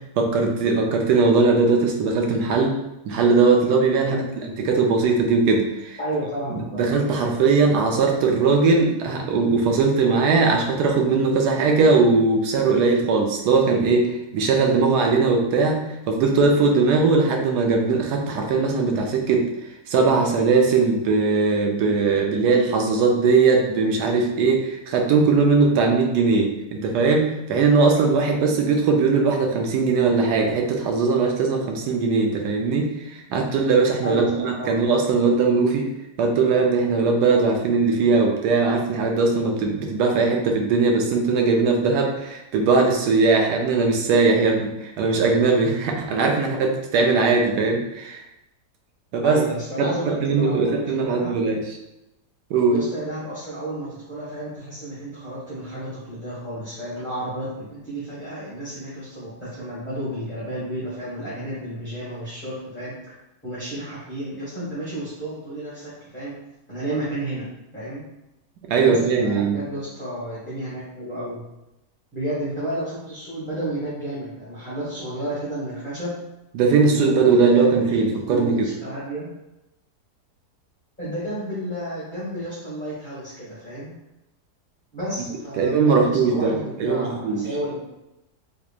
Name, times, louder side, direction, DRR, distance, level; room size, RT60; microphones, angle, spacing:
voice 1, 0.2-2.8 3.1-4.2 4.6-6.0 6.7-14.1 14.3-15.8 16.1-19.5 19.9-35.9 36.2-48.2 49.1-49.4 49.8-51.6 52.5-52.8 68.7-69.6 76.5-78.7 85.6-87.4, right 4 dB, 75° right, 2 dB, 1.2 m, -20 dB
voice 2, 6.0-7.0 34.0-34.8 49.2-51.4 52.7-62.9 63.4-66.4 66.7-68.0 68.8-71.4 72.1-76.2 76.8-79.3 81.0-83.9 84.9-87.8, right 1 dB, 10° left, -11 dB, 1.0 m, -31 dB
3.5 x 3.4 x 2.4 m, 0.91 s
omnidirectional pair, 1.8 m